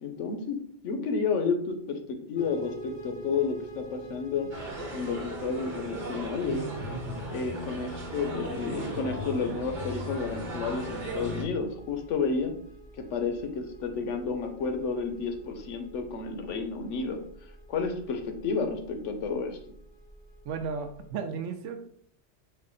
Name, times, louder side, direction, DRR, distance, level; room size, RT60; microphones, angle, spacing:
voice 1, 0.0-0.6 0.8-4.5 4.9-6.7 7.3-12.5 13.1-17.2 17.7-19.6, left 5 dB, 90° left, 6 dB, 1.0 m, -31 dB
sound 1, 2.4-21.1, right 1 dB, 50° left, 0.7 m, -48 dB
sound 2, 4.5-11.4, right 1 dB, 45° right, 1.1 m, -37 dB
voice 2, 20.4-21.9, right 6 dB, 90° right, 7 dB, 0.9 m, -34 dB
4.8 x 2.2 x 3.7 m, 0.65 s
omnidirectional pair, 1.2 m